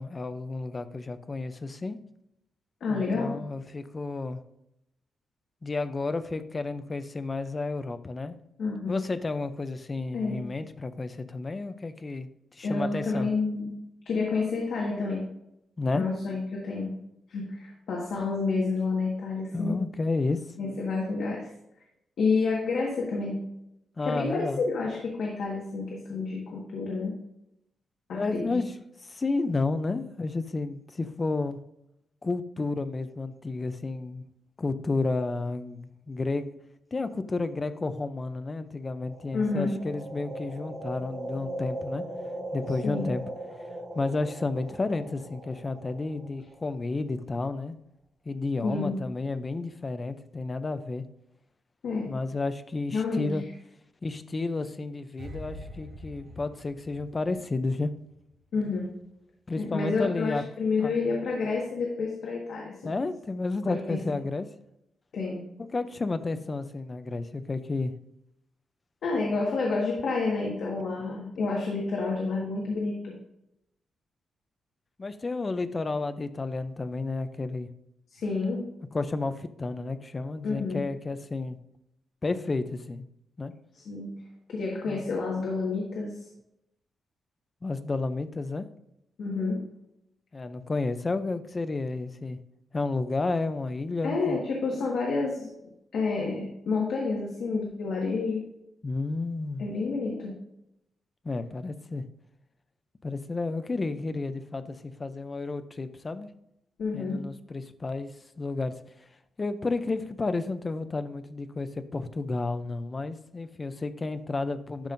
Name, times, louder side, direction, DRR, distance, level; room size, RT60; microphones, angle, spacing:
voice 1, 0.0-2.0 2.9-4.4 5.6-8.4 8.9-13.3 15.8-16.1 19.5-20.5 24.0-24.6 28.1-28.7 29.0-31.6 32.2-34.2 34.6-36.5 36.9-42.0 42.5-43.2 43.9-47.8 48.3-51.0 52.1-53.4 54.0-57.9 59.5-60.4 60.8-61.0 62.8-64.5 65.7-67.9 70.9-71.1 75.0-77.7 78.9-81.6 82.2-83.1 83.4-83.5 84.9-85.0 87.6-88.7 90.3-92.4 92.7-94.4 98.8-99.7 101.2-102.0 103.0-106.3 106.9-108.7 109.4-114.9, left 3 dB, 20° left, 11 dB, 0.4 m, -31 dB
voice 2, 2.8-3.3 8.6-9.0 10.1-10.4 12.6-13.7 14.0-15.2 15.9-16.9 17.3-19.8 20.6-21.5 22.2-23.4 24.0-27.1 28.1-28.6 39.3-39.7 42.8-43.1 48.6-49.0 51.8-52.1 52.9-53.4 58.5-58.9 59.6-62.9 63.7-64.0 65.1-65.4 69.0-73.1 78.1-78.6 80.4-80.8 83.8-84.1 84.5-86.3 89.2-89.6 94.0-95.5 95.9-98.4 99.6-100.3 106.8-107.2, left 4 dB, 65° left, -2 dB, 1.5 m, -29 dB
sound 1, 38.9-46.9, right 1 dB, 30° right, 1.4 m, -39 dB
sound 2, 55.2-58.4 58.6-58.9, equal, 55° right, 2.4 m, -45 dB
11.5 x 5.4 x 2.6 m, 0.82 s
wide cardioid pair, 180°, 0 cm